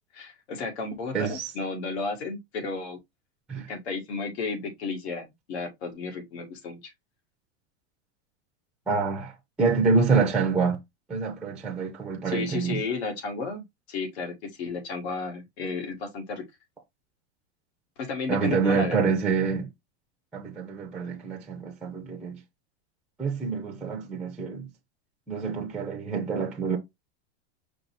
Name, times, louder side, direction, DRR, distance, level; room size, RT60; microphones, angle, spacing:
voice 1, 0.1-3.0 3.6-6.9 12.2-13.6 13.9-14.3 14.6-16.4 18.0-19.1, left 4 dB, 90° left, 1.8 m, -33 dB
voice 2, 1.1-1.5 3.5-3.7 8.9-9.3 9.6-10.8 11.1-12.8 18.3-19.7 20.3-22.4 23.2-24.7 25.3-26.8, right 5 dB, 5° right, 0.4 m, -26 dB
5.2 x 2.3 x 4.4 m
supercardioid pair, 165°, 32 cm